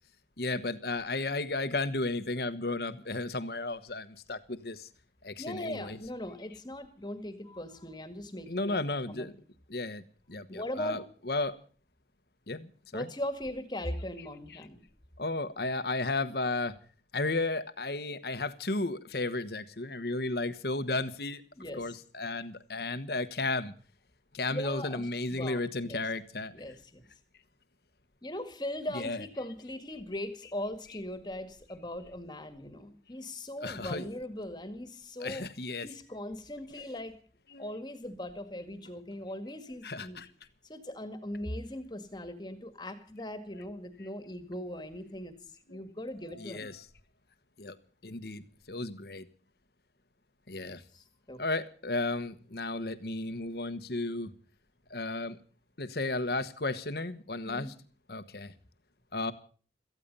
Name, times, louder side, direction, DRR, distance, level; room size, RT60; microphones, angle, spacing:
voice 1, 0.4-4.9 5.2-6.0 8.5-9.3 9.7-10.0 10.3-11.5 12.5-13.1 15.2-16.7 17.1-21.4 21.7-23.7 24.3-26.5 28.9-29.3 30.9-31.0 33.6-34.1 35.2-35.9 36.7-36.8 37.5-37.7 39.8-40.3 43.5-43.6 45.7-45.8 46.2-46.8 47.6-47.8 48.0-49.3 50.5-50.8 51.4-54.3 54.9-55.4 55.8-57.7 58.1-58.5 59.1-59.3, left 2 dB, 60° left, 1.3 m, -34 dB
voice 2, 5.4-9.3 10.5-11.0 12.9-14.8 21.5-22.0 24.5-26.0 26.5-27.1 28.2-35.5 35.8-37.2 37.6-40.2 40.7-45.4 45.7-46.7 50.9-51.4 57.5-57.7, left 1 dB, 25° left, 1.9 m, -39 dB
18.0 x 14.5 x 5.5 m
head